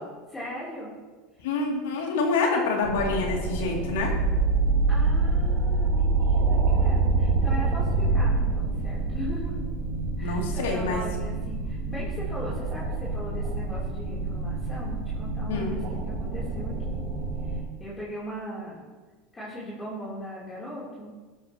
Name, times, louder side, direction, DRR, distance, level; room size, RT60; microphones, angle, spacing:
voice 1, 0.3-0.9 2.2-2.3 4.9-9.5 10.2-17.0 17.4-18.8 19.3-21.1, equal, 15° left, -8 dB, 3.6 m, -39 dB
voice 2, 1.4-4.1 10.2-11.0 15.5-15.8, left 3 dB, 90° left, 0 dB, 2.9 m, -27 dB
sound 1, 2.8-17.6, right 3 dB, 50° right, 3.4 m, -26 dB
15.0 x 12.5 x 3.1 m, 1.3 s
supercardioid pair, 130°, 0 cm